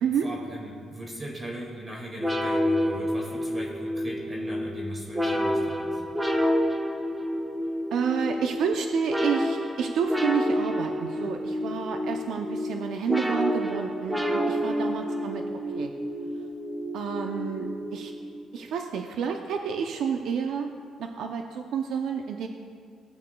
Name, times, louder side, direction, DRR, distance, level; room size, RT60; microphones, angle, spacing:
voice 1, 0.0-6.0, equal, 25° right, -2 dB, 2.1 m, -39 dB
sound 1, 2.2-18.4, equal, 10° right, 1.0 m, -29 dB
voice 2, 7.9-15.4 15.7-15.9 16.9-18.1 18.5-20.7 21.0-22.5, right 6 dB, 75° right, 4 dB, 0.5 m, -29 dB
17.5 x 8.4 x 2.3 m, 2.2 s
cardioid pair, 90°, 0 cm